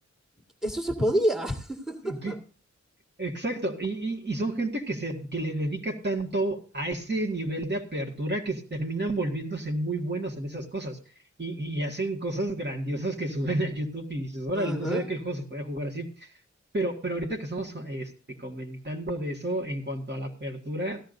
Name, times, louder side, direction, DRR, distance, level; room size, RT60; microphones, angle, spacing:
voice 1, 0.6-2.4 14.5-15.1, equal, ahead, 3 dB, 1.9 m, -28 dB
voice 2, 2.0-2.4 3.2-11.0 11.4-16.3 16.7-18.1 18.4-21.0, right 1 dB, 35° right, 1 dB, 1.9 m, -31 dB
16.5 x 12.5 x 2.6 m, 0.39 s
wide cardioid pair, 85°, 29 cm